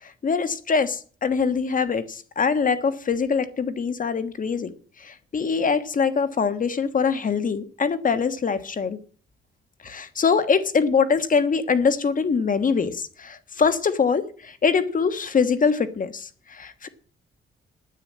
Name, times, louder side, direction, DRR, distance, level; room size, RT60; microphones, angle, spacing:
voice 1, 0.0-4.7 5.0-9.0 9.8-16.9, left 5 dB, 40° left, 11 dB, 1.4 m, -23 dB
9.8 x 9.0 x 8.6 m, 0.43 s
cardioid pair, 110°, 20 cm